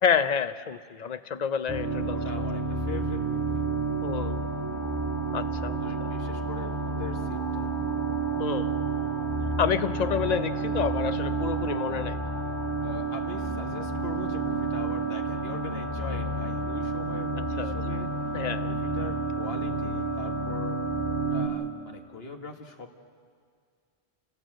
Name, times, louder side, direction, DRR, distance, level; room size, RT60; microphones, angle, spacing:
voice 1, 0.0-2.2 4.0-4.4 5.3-6.1 8.4-8.7 9.6-12.2 17.6-17.8 18.3-18.7, left 7 dB, 45° left, 12 dB, 0.7 m, -28 dB
sound 1, 1.7-21.5, right 3 dB, 25° right, 2.4 m, -30 dB
voice 2, 2.1-3.6 5.8-7.7 12.8-18.1 18.5-20.8 21.3-23.0, left 3 dB, 70° left, 4 dB, 1.9 m, -41 dB
28.0 x 16.5 x 7.8 m, 2.1 s
omnidirectional pair, 1.1 m